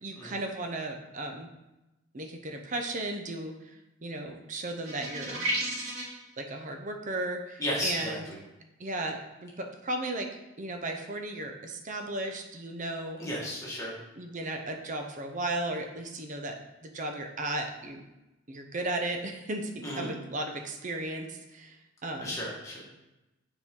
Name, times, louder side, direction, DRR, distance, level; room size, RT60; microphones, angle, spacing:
voice 1, 0.0-1.5 2.1-3.5 4.0-5.5 6.4-8.2 8.8-10.3 10.6-13.2 14.2-18.0 18.5-21.8 22.0-22.4, right 2 dB, 35° right, 4 dB, 0.6 m, -35 dB
sound 1, 4.8-6.2, right 1 dB, 85° right, 2.0 m, -32 dB
voice 2, 7.6-8.4 13.2-13.9 19.8-20.1 22.2-22.9, left 1 dB, 15° left, -6 dB, 1.6 m, -34 dB
6.7 x 4.4 x 3.7 m, 0.99 s
head